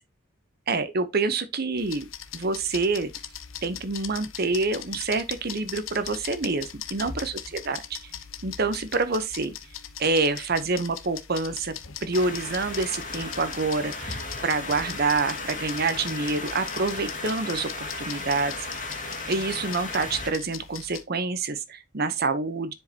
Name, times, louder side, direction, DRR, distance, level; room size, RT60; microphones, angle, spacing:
voice 1, 0.7-2.1 2.3-3.1 3.6-7.8 8.4-9.5 10.0-11.7 12.0-18.7 19.3-22.7, right 3 dB, 50° right, 0.8 m, -27 dB
sound 1, 1.8-21.0, left 9 dB, 75° left, 0.9 m, -40 dB
sound 2, 12.1-20.3, left 3 dB, 40° left, 2.1 m, -35 dB
10.0 x 5.1 x 2.8 m
head